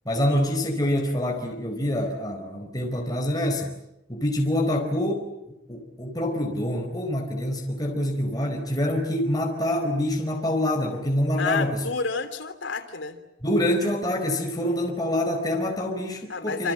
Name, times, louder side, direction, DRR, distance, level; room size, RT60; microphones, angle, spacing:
voice 1, 0.0-3.8 4.1-5.3 5.7-11.8 13.4-16.7, left 1 dB, 20° left, 2 dB, 4.5 m, -26 dB
voice 2, 11.4-13.2 16.3-16.7, left 4 dB, 80° left, 7 dB, 3.3 m, -29 dB
28.0 x 27.0 x 7.7 m, 0.86 s
head